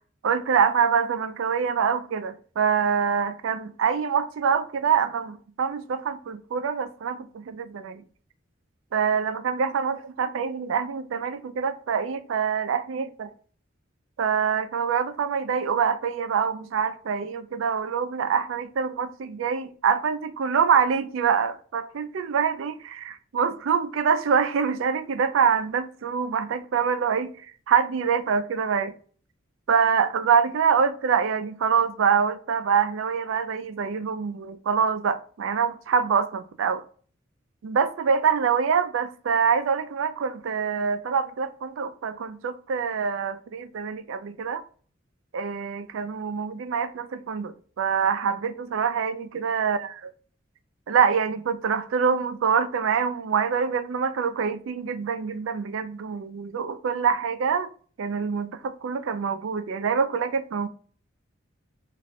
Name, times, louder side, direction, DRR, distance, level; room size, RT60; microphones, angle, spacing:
voice 1, 0.2-8.0 8.9-13.3 14.2-29.0 29.7-36.8 37.6-44.6 45.3-49.9 50.9-57.7 58.0-60.7, right 6 dB, 85° right, 0.4 m, -25 dB
3.1 x 2.5 x 2.6 m
head